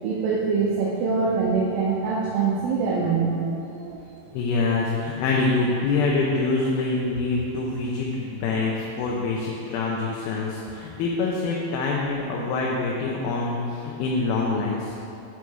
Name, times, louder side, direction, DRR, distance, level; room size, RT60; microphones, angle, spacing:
voice 1, 0.0-4.0, right 5 dB, 75° right, -4 dB, 2.5 m, -24 dB
voice 2, 4.3-14.9, left 3 dB, 80° left, -3 dB, 2.6 m, -25 dB
9.3 x 5.5 x 4.8 m, 2.8 s
omnidirectional pair, 4.3 m